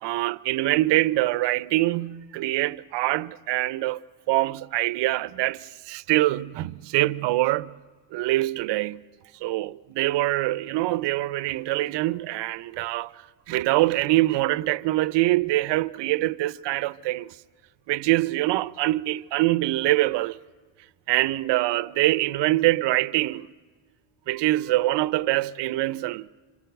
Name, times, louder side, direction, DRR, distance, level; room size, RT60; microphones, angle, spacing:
voice 1, 0.0-4.0 4.3-7.7 8.1-9.0 9.4-17.4 17.9-20.4 21.1-23.5 24.3-26.3, right 17 dB, 65° right, 0.7 m, -24 dB
26.0 x 26.0 x 8.0 m
cardioid pair, 110°, 46 cm